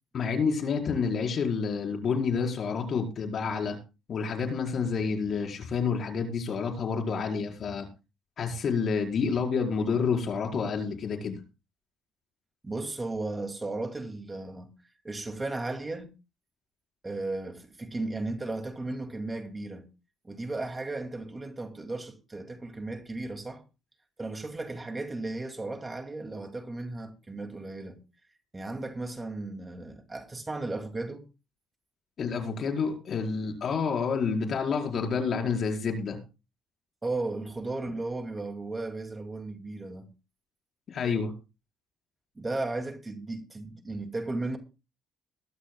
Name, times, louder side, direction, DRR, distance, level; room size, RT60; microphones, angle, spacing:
voice 1, 0.1-3.8 4.1-7.9 8.4-11.4 32.2-36.2 40.9-41.3, left 5 dB, 50° left, 5.0 m, -29 dB
voice 2, 12.6-14.7 15.0-16.1 17.0-19.9 20.2-23.6 24.2-28.0 28.5-31.3 37.0-40.1 42.4-44.6, right 2 dB, 20° right, 2.5 m, -35 dB
21.0 x 13.0 x 2.3 m
cardioid pair, 100°, 0 cm